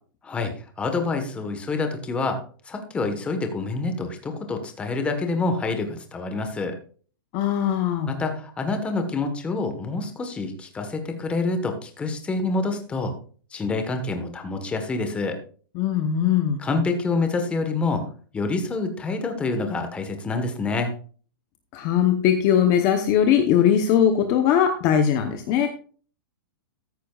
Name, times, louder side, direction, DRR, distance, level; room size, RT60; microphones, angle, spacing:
voice 1, 0.2-2.4 2.7-6.8 8.1-13.1 13.5-15.4 16.6-18.0 18.3-20.9, left 3 dB, 10° left, 6 dB, 1.3 m, -27 dB
voice 2, 7.3-8.1 15.7-16.6 21.7-25.7, left 9 dB, 30° left, 6 dB, 0.9 m, -20 dB
14.0 x 10.0 x 2.4 m, 0.42 s
hypercardioid pair, 165°, 12 cm